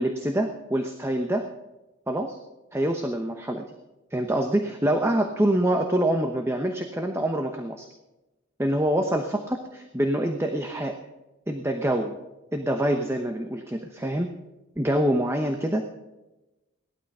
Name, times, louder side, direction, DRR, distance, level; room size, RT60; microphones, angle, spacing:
voice 1, 0.0-1.5 2.1-2.4 2.7-3.6 4.1-7.9 8.6-10.9 11.5-12.1 12.5-14.3 14.8-15.8, right 1 dB, 15° right, 4 dB, 0.9 m, -25 dB
18.0 x 12.5 x 5.5 m, 1.0 s
head